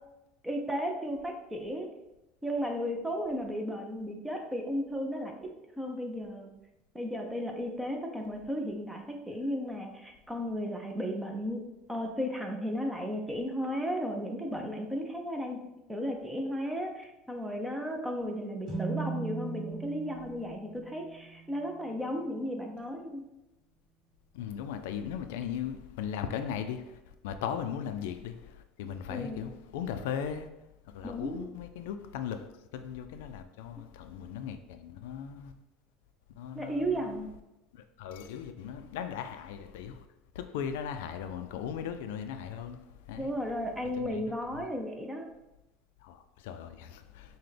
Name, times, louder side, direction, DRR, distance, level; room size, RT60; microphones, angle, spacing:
voice 1, 0.4-1.9 2.4-5.5 5.8-6.5 6.9-15.6 15.9-23.3 29.1-29.4 31.0-31.5 36.5-37.3 43.2-45.3, equal, 5° right, 0.6 m, -34 dB
sound 1, 18.7-22.2, right 5 dB, 25° right, 1.5 m, -39 dB
voice 2, 24.4-26.9 27.2-28.4 28.8-30.5 30.9-32.5 32.7-35.5 36.4-37.2 38.0-40.0 40.4-42.8 43.1-43.3 44.0-44.6 46.4-47.0, left 8 dB, 85° left, 0.3 m, -37 dB
5.8 x 2.2 x 3.3 m
supercardioid pair, 140°, 0 cm